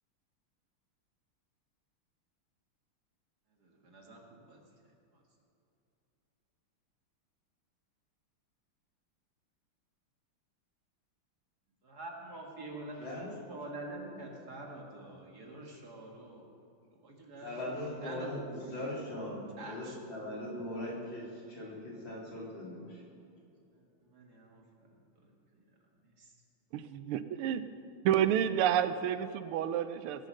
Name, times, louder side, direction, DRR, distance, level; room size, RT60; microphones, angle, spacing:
voice 1, 3.6-4.6 11.8-16.5 17.0-18.8 19.6-20.0 23.7-24.9 25.2-25.3 26.2-26.3, right 2 dB, 50° right, 0 dB, 2.2 m, -46 dB
voice 2, 17.4-19.4 19.7-22.9, left 1 dB, 60° left, -5 dB, 3.9 m, -40 dB
voice 3, 26.7-27.6 28.0-30.3, right 10 dB, 85° right, 12 dB, 1.5 m, -30 dB
21.0 x 7.8 x 6.4 m, 2.7 s
omnidirectional pair, 2.4 m